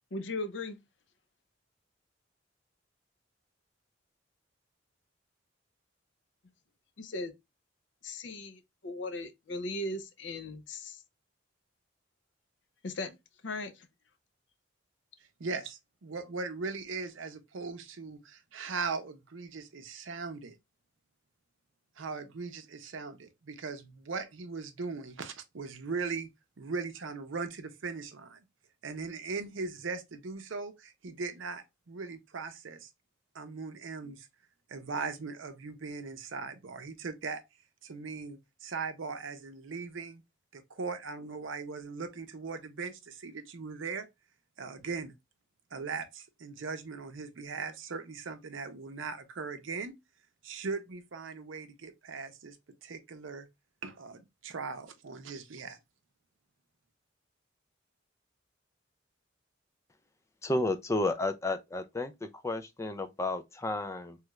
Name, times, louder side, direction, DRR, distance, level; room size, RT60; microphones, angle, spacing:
voice 1, 0.1-0.8 7.0-7.3 8.0-11.0 12.8-13.2 13.4-13.9, left 2 dB, 65° left, 0.5 m, -38 dB
voice 2, 15.4-20.6 22.0-26.3 26.6-28.4 28.8-32.9 33.3-34.3 34.7-37.4 37.8-40.2 40.5-44.1 44.6-45.1 45.7-49.9 50.4-52.6 52.8-53.5 53.8-55.8, right 4 dB, 80° right, 0.6 m, -39 dB
voice 3, 60.4-64.2, left 2 dB, 15° left, 0.3 m, -32 dB
3.1 x 2.3 x 2.9 m
head